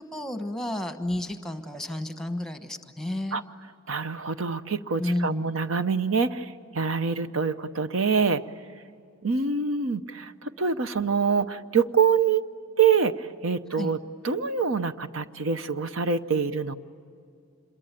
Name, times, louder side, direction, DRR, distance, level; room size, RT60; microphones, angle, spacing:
voice 1, 0.0-3.4 5.0-5.6 13.7-13.9, left 1 dB, ahead, 7 dB, 1.2 m, -31 dB
voice 2, 3.9-8.4 9.2-12.5 12.8-14.0 14.2-16.8, right 6 dB, 75° right, 11 dB, 0.8 m, -25 dB
26.5 x 22.5 x 9.1 m, 2.3 s
head